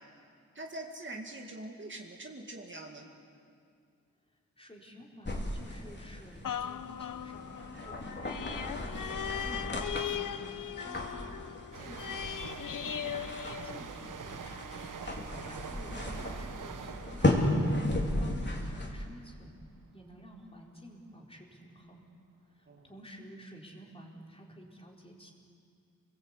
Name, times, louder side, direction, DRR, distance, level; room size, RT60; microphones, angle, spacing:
voice 1, 0.5-3.1 22.7-22.9, right 2 dB, 40° right, 1 dB, 2.3 m, -43 dB
voice 2, 4.6-9.7 10.1-10.5 10.8-11.4 11.7-12.3 12.6-14.8 15.4-17.8 18.2-19.6 19.9-22.1 22.6-25.3, equal, 20° left, -1 dB, 4.2 m, -51 dB
sound 1, 5.2-18.9, left 1 dB, 35° left, 3.5 m, -35 dB
sound 2, 6.4-14.3 14.8-14.9, left 9 dB, 90° left, 0.7 m, -39 dB
sound 3, 11.7-19.2 19.5-19.8, right 6 dB, 80° right, 1.0 m, -45 dB
30.0 x 21.0 x 8.4 m, 2.3 s
wide cardioid pair, 130°, 31 cm